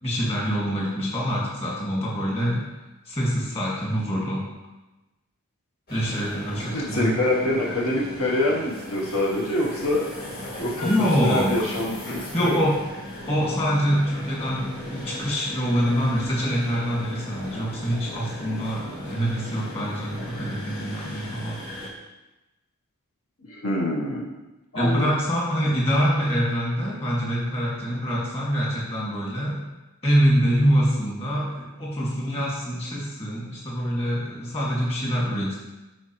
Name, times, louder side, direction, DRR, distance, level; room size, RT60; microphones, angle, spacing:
voice 1, 0.0-2.7 3.1-4.4 5.9-7.1 10.8-11.5 12.2-12.7 13.3-21.6 24.8-29.6 30.0-35.5, equal, 25° left, -4 dB, 1.9 m, -25 dB
sound 1, 5.9-21.9, left 1 dB, 45° left, 1.7 m, -37 dB
voice 2, 6.7-10.1 10.6-10.9 11.2-12.6 23.4-24.3 24.7-25.1, left 1 dB, 70° left, -3 dB, 1.0 m, -25 dB
11.0 x 4.4 x 3.0 m, 1.1 s
head